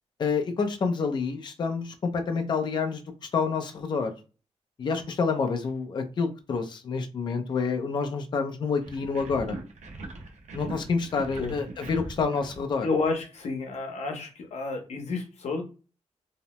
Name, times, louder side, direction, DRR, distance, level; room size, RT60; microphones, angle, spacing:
voice 1, 0.2-3.0 3.3-4.1 4.8-9.6 10.5-12.9, left 5 dB, 40° left, 5 dB, 0.4 m, -28 dB
sound 1, 8.8-13.4, right 2 dB, 70° right, 0.6 m, -41 dB
voice 2, 11.2-11.5 12.8-15.6, left 3 dB, 65° left, 4 dB, 0.7 m, -30 dB
2.7 x 2.0 x 2.9 m, 0.34 s
wide cardioid pair, 170°, 12 cm